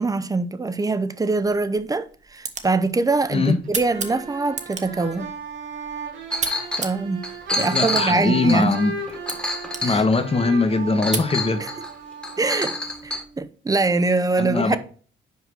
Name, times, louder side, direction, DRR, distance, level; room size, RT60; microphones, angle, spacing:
voice 1, 0.0-5.3 6.8-7.2 7.6-8.7 9.8-10.0 12.4-12.8 13.0-14.8, right 3 dB, 20° right, 0.6 m, -23 dB
sound 1, 1.3-11.3, right 5 dB, 35° right, 1.1 m, -36 dB
voice 2, 3.3-3.6 7.6-9.0 9.8-11.7 14.4-14.8, left 3 dB, 30° left, 1.0 m, -21 dB
sound 2, 3.6-13.4, right 4 dB, 70° right, 2.1 m, -35 dB
Chink clink, 6.3-6.9 7.2-10.4 11.0-11.9 12.2-13.2, left 1 dB, 5° left, 1.4 m, -28 dB
5.5 x 4.7 x 6.0 m
cardioid pair, 90°, 20 cm